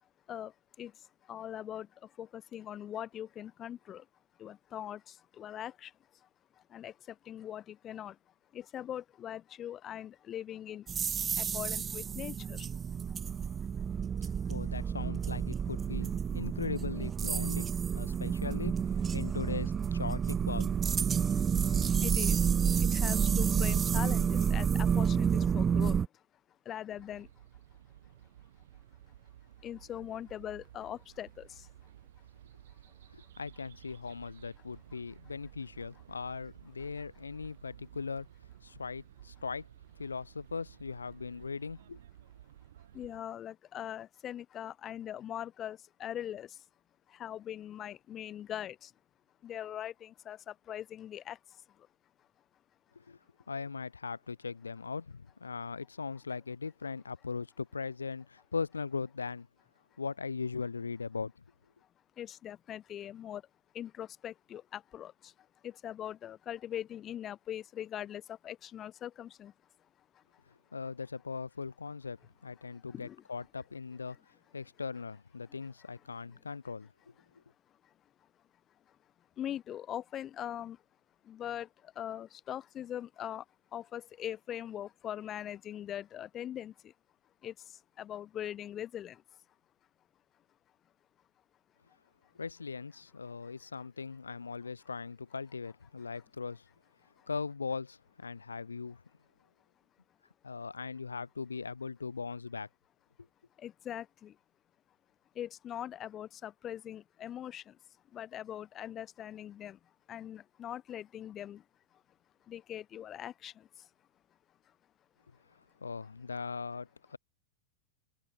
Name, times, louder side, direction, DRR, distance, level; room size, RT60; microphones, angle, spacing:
voice 1, 0.0-4.1 4.4-8.2 8.5-10.9 11.3-12.7 13.1-13.3 13.6-13.7 18.1-18.2 21.2-21.4 21.7-26.2 26.5-27.4 29.1-29.2 29.6-31.9 32.7-32.9 42.9-46.6 47.1-48.9 49.4-51.9 52.2-52.3 62.2-63.4 63.7-69.5 70.1-70.4 72.7-73.2 76.3-76.6 77.3-77.9 78.9-80.8 81.2-83.5 83.7-86.9 87.4-89.4 97.2-97.3 103.6-104.4 105.3-107.8 108.1-111.7 111.9-112.0 112.4-113.9 114.7-114.8, left 11 dB, 30° left, 4.4 m, -42 dB
sound 1, 10.9-26.1, right 7 dB, 20° right, 0.5 m, -30 dB
voice 2, 14.5-20.7 21.3-21.5 33.1-38.3 38.6-39.7 40.0-42.0 53.0-53.2 53.5-59.5 60.0-61.3 70.7-74.2 74.5-76.9 92.4-96.7 97.3-99.0 100.4-102.7 115.8-117.2, left 5 dB, 75° left, 3.8 m, -39 dB
sound 2, 26.9-43.2, right 12 dB, 60° right, 2.9 m, -55 dB
figure-of-eight pair, 90°, 0 cm